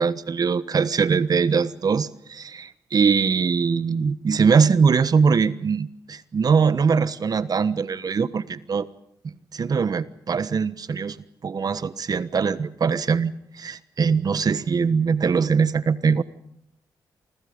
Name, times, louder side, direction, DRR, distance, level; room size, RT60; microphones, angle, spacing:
voice 1, 0.0-8.9 9.2-11.2 11.4-16.2, right 5 dB, 50° right, 15 dB, 1.3 m, -22 dB
28.5 x 25.5 x 5.2 m, 0.73 s
supercardioid pair, 50°, 8 cm